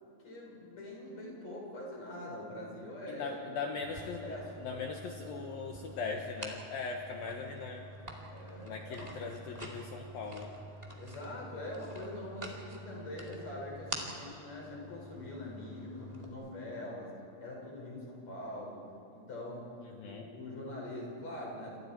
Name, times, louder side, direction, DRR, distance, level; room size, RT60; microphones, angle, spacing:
voice 1, 0.0-3.4 4.1-4.7 7.1-7.2 8.3-9.1 11.0-17.1 17.4-18.8 19.1-19.7 20.0-21.8, left 1 dB, 35° left, -3 dB, 6.7 m, -43 dB
voice 2, 3.1-4.2 4.6-7.9 8.6-10.5 19.8-20.3, left 4 dB, 65° left, 2 dB, 2.5 m, -40 dB
sound 1, 3.8-16.3, right 1 dB, 20° right, 1.0 m, -47 dB
28.5 x 27.0 x 4.6 m, 2.6 s
omnidirectional pair, 5.4 m